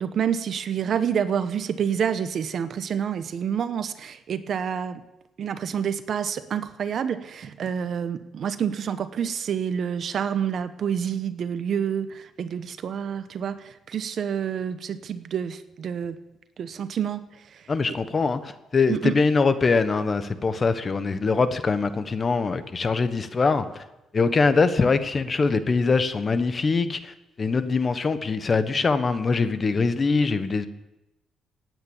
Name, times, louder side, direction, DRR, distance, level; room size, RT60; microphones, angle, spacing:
voice 1, 0.0-5.0 5.4-16.2 16.6-17.6 18.9-19.2, right 8 dB, 60° right, 12 dB, 1.1 m, -28 dB
voice 2, 17.7-23.8 24.1-30.7, left 4 dB, 35° left, 11 dB, 1.3 m, -23 dB
17.5 x 9.4 x 7.2 m, 0.96 s
cardioid pair, 90°, 0 cm